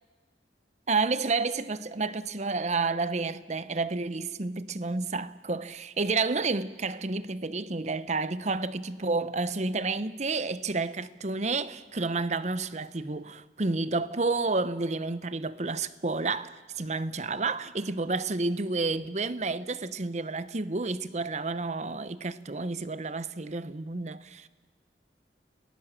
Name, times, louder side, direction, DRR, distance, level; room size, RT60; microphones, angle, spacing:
voice 1, 0.9-24.5, right 3 dB, 40° right, 0.8 m, -30 dB
30.0 x 19.0 x 7.5 m
head